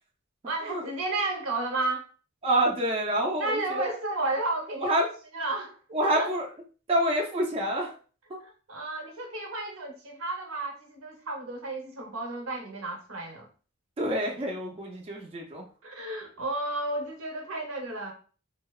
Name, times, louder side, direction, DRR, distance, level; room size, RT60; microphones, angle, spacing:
voice 1, 0.5-2.0 3.4-5.1 5.3-5.7 6.0-6.3 8.4-13.5 15.8-18.1, right 2 dB, 75° right, 0.7 m, -32 dB
voice 2, 2.4-3.9 4.8-5.1 5.9-6.5 6.9-8.0 8.3-8.4 14.0-15.6, right 1 dB, 30° right, 0.4 m, -27 dB
2.7 x 2.0 x 2.3 m
head